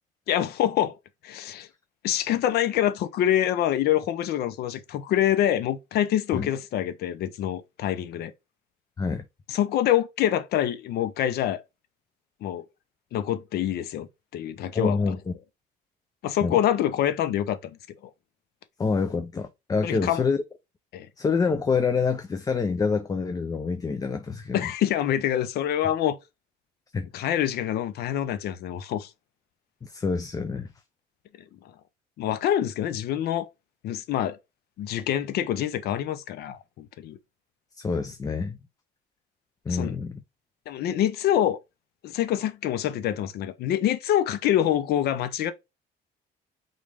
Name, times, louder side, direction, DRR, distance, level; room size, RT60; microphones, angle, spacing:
voice 1, 0.3-1.0 1.2-1.7 2.0-8.3 9.5-11.6 12.4-12.6 13.1-15.2 16.2-17.8 19.8-20.2 20.9-21.1 24.5-26.2 27.1-29.1 32.2-33.5 33.8-34.4 34.8-37.2 39.7-40.0 40.7-41.6 42.0-45.5, left 11 dB, 70° left, 0.7 m, -26 dB
voice 2, 14.7-15.3 16.4-16.6 18.8-20.4 21.2-24.6 26.9-27.1 29.8-30.7 37.8-38.6 39.7-40.2, left 5 dB, 20° left, 0.4 m, -26 dB
3.9 x 3.1 x 3.4 m
cardioid pair, 110°, 17 cm